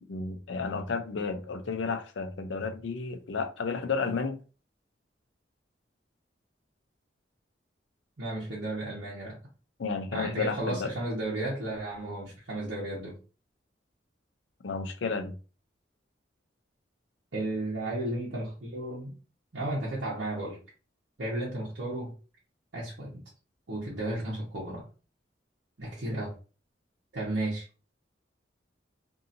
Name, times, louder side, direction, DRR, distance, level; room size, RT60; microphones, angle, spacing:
voice 1, 0.1-4.4 9.8-10.9 14.6-15.3, left 4 dB, 80° left, 0.5 m, -32 dB
voice 2, 8.2-9.4 10.1-13.1 17.3-19.1 19.5-20.6 21.2-22.1 22.7-23.2 23.7-24.8 25.8-26.3 27.1-27.6, right 1 dB, 70° right, 1.0 m, -33 dB
2.7 x 2.7 x 2.5 m
head